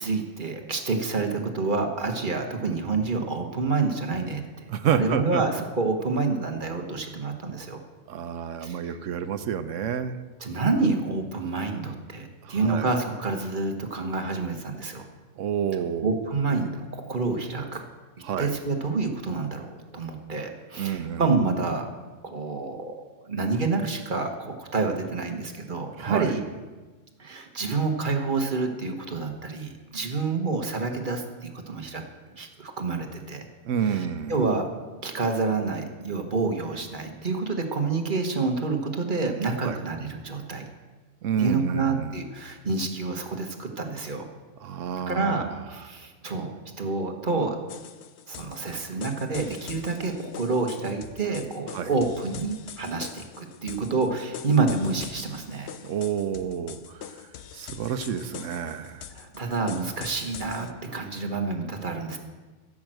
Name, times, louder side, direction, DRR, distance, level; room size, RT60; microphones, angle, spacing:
voice 1, 0.0-4.4 4.9-7.8 8.6-8.8 10.4-15.1 16.0-17.8 18.4-21.9 22.2-22.9 23.2-26.4 27.2-32.0 32.3-33.5 33.9-34.7 35.0-40.6 41.4-44.3 45.1-46.5 46.8-47.6 48.3-55.7 59.1-62.2, right 3 dB, 40° right, 4 dB, 1.4 m, -28 dB
voice 2, 4.7-5.4 8.1-10.2 12.4-12.9 15.4-16.2 18.2-18.5 20.8-21.3 26.0-26.3 33.6-34.4 39.6-39.8 41.2-42.2 44.6-45.4 45.8-45.9 51.7-51.9 55.8-57.0 57.5-59.1, right 8 dB, 80° right, 11 dB, 1.1 m, -29 dB
sound 1, 47.7-60.7, left 8 dB, 65° left, 0.9 m, -43 dB
15.0 x 6.3 x 7.7 m, 1.3 s
omnidirectional pair, 1.3 m